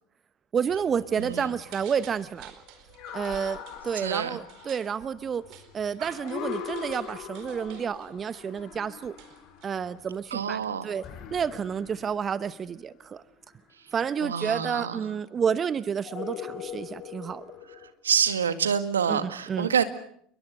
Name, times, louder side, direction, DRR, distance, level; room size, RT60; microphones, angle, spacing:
voice 1, 0.5-2.5 3.1-9.2 9.6-11.1 11.3-13.2 13.9-17.4 19.1-19.7, right 7 dB, 30° right, 16 dB, 0.9 m, -30 dB
sound 1, 0.7-10.4 10.9-12.9 14.3-15.1 16.0-17.9, left 9 dB, 50° left, 5.8 m, -42 dB
sound 2, 1.1-10.1, right 10 dB, 55° right, 4.4 m, -50 dB
voice 2, 4.0-4.4 10.3-10.9 14.2-15.0 18.0-19.8, right 7 dB, 80° right, 11 dB, 1.9 m, -27 dB
sound 3, 10.1-10.6 10.9-13.1, left 7 dB, 35° left, 6.6 m, -51 dB
28.5 x 22.0 x 6.6 m, 0.65 s
figure-of-eight pair, 75°, 0 cm